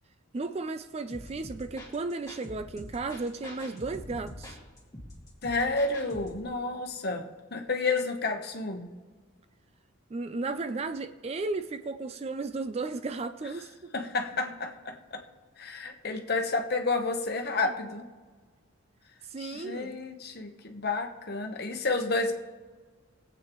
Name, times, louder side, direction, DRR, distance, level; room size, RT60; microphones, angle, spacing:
voice 1, 0.3-4.6 10.1-13.7 17.6-17.7 19.2-20.0, right 3 dB, 30° right, 10 dB, 0.3 m, -34 dB
sound 1, 1.1-6.4, left 1 dB, 15° left, 1.9 m, -45 dB
voice 2, 5.4-8.9 13.9-15.2 15.6-18.1 19.4-22.3, left 3 dB, 45° left, 5 dB, 1.0 m, -30 dB
20.5 x 8.2 x 3.0 m, 1.4 s
head